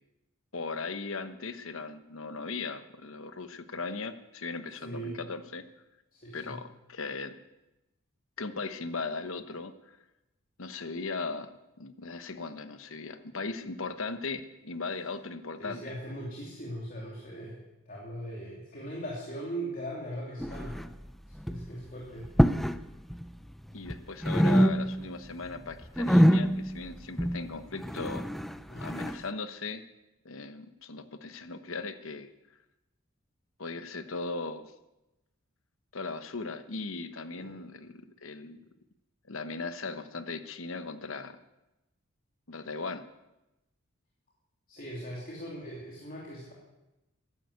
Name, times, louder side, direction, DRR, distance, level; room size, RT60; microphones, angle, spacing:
voice 1, 0.5-5.6 6.3-7.3 8.4-9.7 10.6-15.9 23.7-28.2 28.8-29.8 30.2-32.3 33.6-34.7 35.9-38.6 39.3-41.4 42.5-43.0, left 4 dB, 70° left, 11 dB, 1.1 m, -38 dB
voice 2, 4.8-5.2 6.1-6.6 15.6-20.8 21.5-22.3 28.7-28.9 37.4-37.5 44.7-46.5, right 1 dB, 40° left, -4 dB, 3.1 m, -40 dB
sound 1, 20.4-21.1 21.3-21.7 22.2-22.8 23.1-24.0 24.2-25.2 25.5-29.2, equal, ahead, 0.4 m, -26 dB
14.5 x 11.5 x 8.2 m, 0.97 s
head